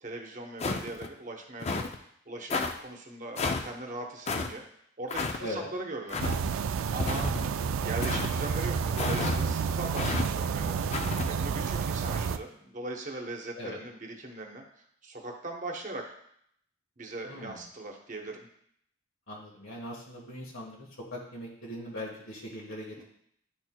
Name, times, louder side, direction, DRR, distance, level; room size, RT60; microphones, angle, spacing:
voice 1, 0.0-4.6 5.0-6.5 6.9-7.3 7.8-10.8 11.3-14.6 15.0-16.1 17.0-18.5 23.0-23.1, right 2 dB, 35° right, 2 dB, 0.8 m, -40 dB
sound 1, 0.6-1.1 1.6-2.0 2.5-2.7 3.4-3.7 4.3-4.5 5.1-5.4 6.1-6.4 7.0-7.5 8.0-8.3 9.0-9.4 10.0-10.3 10.9-11.3, left 3 dB, 30° left, 0.4 m, -31 dB
sound 2, 6.2-12.4, right 6 dB, 70° right, 0.3 m, -30 dB
voice 2, 17.2-17.6 19.3-23.0, left 1 dB, 75° left, -2 dB, 1.4 m, -40 dB
10.0 x 4.4 x 2.2 m, 0.70 s
head